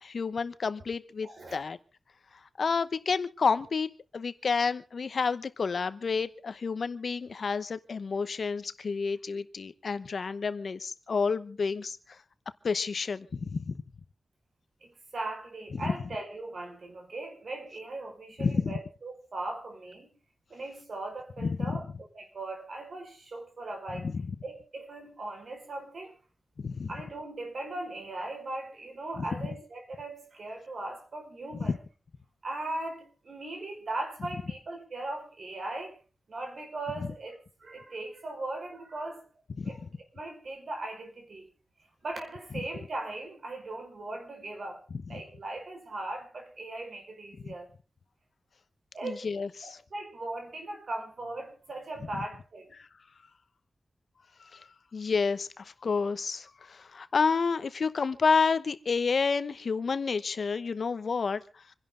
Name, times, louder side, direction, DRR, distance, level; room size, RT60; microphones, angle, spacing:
voice 1, 0.0-1.8 2.6-12.0 12.6-13.8 15.7-15.9 18.4-18.8 21.4-21.8 24.1-24.3 26.6-26.9 31.6-31.8 39.6-39.8 45.1-45.2 47.4-47.5 49.0-49.8 52.8-52.9 54.5-61.4, left 5 dB, 60° left, 0.9 m, -30 dB
voice 2, 1.2-1.6 14.8-20.2 20.5-21.8 22.1-24.1 24.4-26.2 26.9-31.8 32.4-36.0 36.3-39.2 39.6-39.8 40.1-41.5 42.0-44.8 45.1-47.7 48.9-49.3 49.6-52.7, right 2 dB, 55° right, 5.3 m, -39 dB
27.0 x 11.0 x 3.9 m
wide cardioid pair, 135°, 0 cm